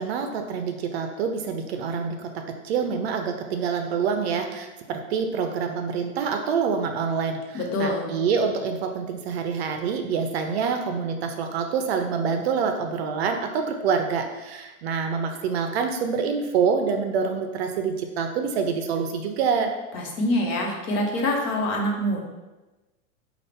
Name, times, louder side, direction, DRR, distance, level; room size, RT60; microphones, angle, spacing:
voice 1, 0.0-19.7, right 6 dB, 50° right, 5 dB, 0.5 m, -26 dB
voice 2, 7.5-8.1 19.9-22.2, left 1 dB, 65° left, 0 dB, 1.2 m, -25 dB
5.3 x 2.4 x 3.4 m, 1.1 s
supercardioid pair, 155°, 42 cm